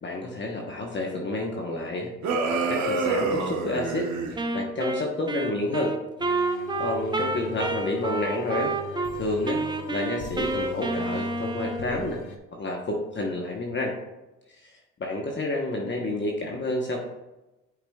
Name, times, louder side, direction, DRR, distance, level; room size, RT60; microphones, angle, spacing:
voice 1, 0.0-5.9 6.5-9.6 9.9-13.9 14.6-14.7 15.0-17.0, left 2 dB, 40° left, 0 dB, 1.0 m, -30 dB
sound 1, 2.2-4.4, right 3 dB, 70° right, 1.1 m, -27 dB
Wind instrument woodwind instrument, 4.4-9.1 9.5-12.1, right 2 dB, 15° right, 0.6 m, -29 dB
sound 2, 6.2-12.4, left 5 dB, 90° left, 0.6 m, -41 dB
9.2 x 5.0 x 2.3 m, 1.0 s
cardioid pair, 90°, 30 cm